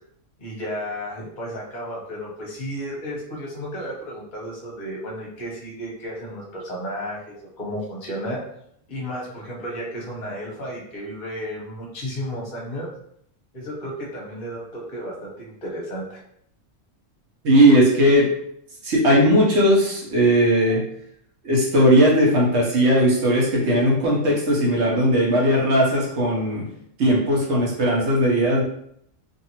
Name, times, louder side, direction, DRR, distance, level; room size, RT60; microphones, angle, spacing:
voice 1, 0.4-8.4 8.9-12.9 13.5-16.2, equal, 45° left, -3 dB, 0.8 m, -33 dB
voice 2, 17.4-18.3 18.8-20.8 21.4-26.6 27.0-28.6, equal, 65° right, -4 dB, 1.1 m, -18 dB
2.6 x 2.6 x 2.9 m, 0.70 s
omnidirectional pair, 1.3 m